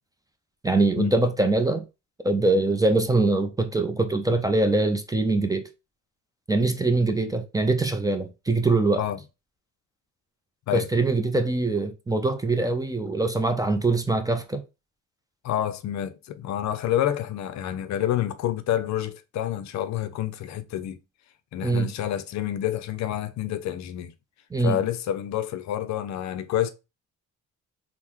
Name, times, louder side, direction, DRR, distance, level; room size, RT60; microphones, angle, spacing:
voice 1, 0.6-1.8 2.2-5.7 6.5-9.0 10.7-14.6 21.6-21.9 24.5-24.8, right 2 dB, 10° right, 0.4 m, -23 dB
voice 2, 15.4-21.0 21.5-24.1 24.6-26.7, left 11 dB, 65° left, 0.5 m, -28 dB
3.5 x 2.1 x 2.9 m
cardioid pair, 90°, 30 cm